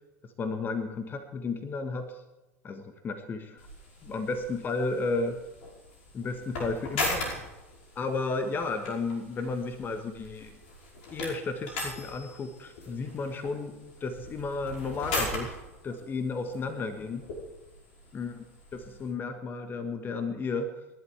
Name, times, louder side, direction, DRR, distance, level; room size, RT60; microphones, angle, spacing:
voice 1, 0.4-2.2 2.6-3.6 4.0-5.4 6.1-7.4 7.9-10.5 11.1-13.7 14.0-15.6 15.8-17.3 18.1-18.4 18.7-20.7, left 3 dB, 25° left, 8 dB, 1.4 m, -33 dB
sound 1, 3.6-19.1, left 2 dB, 60° left, 5.3 m, -39 dB
28.5 x 11.5 x 3.5 m, 1.1 s
figure-of-eight pair, 85°, 8 cm